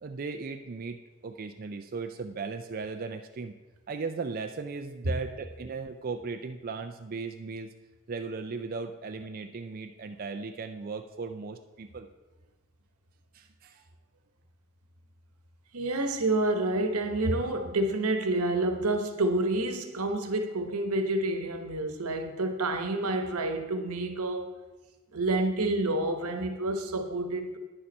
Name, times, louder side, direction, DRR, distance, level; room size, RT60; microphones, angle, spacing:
voice 1, 0.0-1.0 1.2-3.5 3.9-7.7 8.1-12.1 13.3-13.8, right 4 dB, 40° right, 0.4 m, -37 dB
voice 2, 15.7-24.5 25.1-27.6, right 2 dB, 85° right, 1.0 m, -28 dB
9.8 x 7.0 x 5.3 m
head